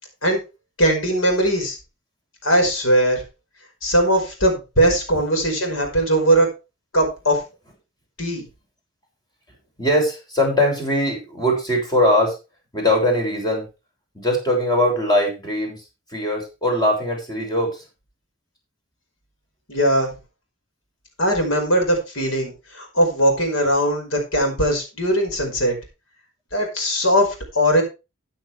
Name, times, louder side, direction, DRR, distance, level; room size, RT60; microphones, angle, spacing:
voice 1, 0.8-1.8 2.4-3.2 3.8-6.5 6.9-7.4 8.2-8.4 19.7-20.1 21.2-25.8 26.5-27.3 27.5-27.8, right 1 dB, 90° left, 3 dB, 5.2 m, -19 dB
voice 2, 9.8-12.4 12.7-13.6 14.1-15.8 16.1-17.8, left 1 dB, 20° left, 1 dB, 6.4 m, -21 dB
14.0 x 9.0 x 3.4 m, 0.28 s
head